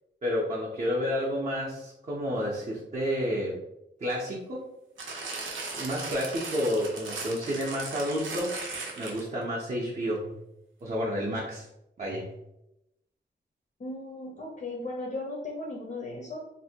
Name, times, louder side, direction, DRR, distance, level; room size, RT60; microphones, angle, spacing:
voice 1, 0.2-3.5 4.0-4.6 5.7-8.5 9.0-10.3 10.8-11.7 12.0-12.2, equal, 35° right, -5 dB, 0.5 m, -30 dB
sound 1, 5.0-9.4 10.2-10.3, right 3 dB, 80° right, 0.5 m, -37 dB
voice 2, 13.8-16.4, left 2 dB, 40° left, -2 dB, 0.5 m, -36 dB
2.5 x 2.1 x 2.7 m, 0.84 s
wide cardioid pair, 155°, 20 cm